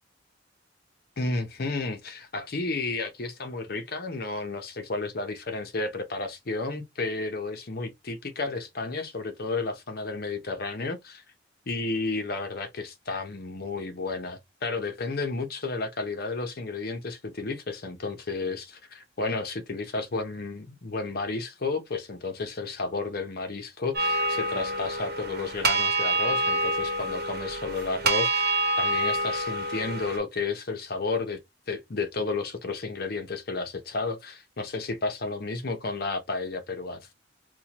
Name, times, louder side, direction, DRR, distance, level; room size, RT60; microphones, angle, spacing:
voice 1, 1.2-11.2 11.7-31.4 31.7-37.1, left 3 dB, 50° left, 0.7 m, -32 dB
sound 1, 23.9-30.2, right 2 dB, 50° right, 1.0 m, -27 dB
4.3 x 2.2 x 2.9 m
head